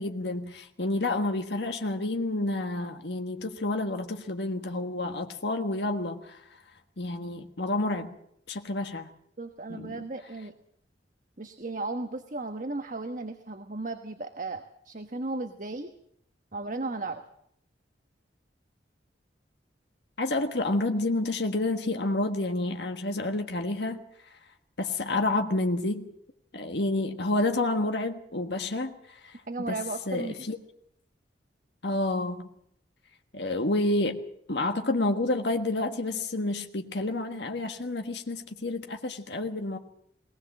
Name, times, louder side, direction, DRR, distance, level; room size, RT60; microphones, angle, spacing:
voice 1, 0.0-6.4 7.0-8.1 8.5-9.1 9.7-9.9 20.2-24.0 24.8-26.1 26.5-29.4 29.7-29.8 30.1-30.6 31.8-32.5 33.3-39.8, left 2 dB, 65° left, 5 dB, 1.5 m, -29 dB
voice 2, 9.4-10.5 11.4-15.9 16.5-17.2 29.5-30.3, right 3 dB, 45° right, 7 dB, 1.1 m, -35 dB
20.5 x 19.5 x 7.5 m, 0.71 s
head